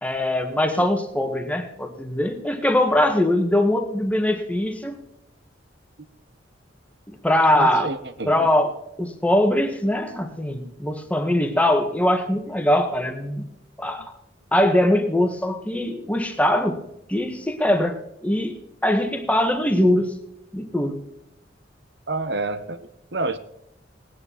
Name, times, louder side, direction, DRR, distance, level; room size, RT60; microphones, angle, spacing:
voice 1, 0.0-5.0 7.1-7.9 8.2-8.7 9.0-13.4 13.8-14.1 14.5-16.8 17.1-18.6 18.8-20.1 20.5-21.0, left 1 dB, 5° left, 1.6 m, -22 dB
voice 2, 7.6-8.5 22.1-23.4, right 2 dB, 60° right, 1.2 m, -28 dB
18.5 x 10.0 x 4.2 m
head